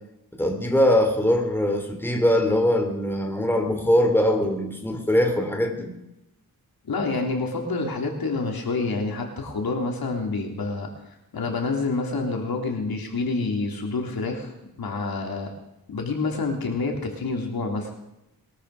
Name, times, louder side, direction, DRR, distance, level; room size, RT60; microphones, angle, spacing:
voice 1, 0.3-5.9, left 1 dB, 5° left, 4 dB, 3.2 m, -22 dB
voice 2, 6.8-10.9 11.3-14.5 14.8-15.5 15.9-17.9, left 3 dB, 75° left, 2 dB, 3.6 m, -27 dB
22.0 x 13.0 x 5.0 m, 0.89 s
wide cardioid pair, 85°, 36 cm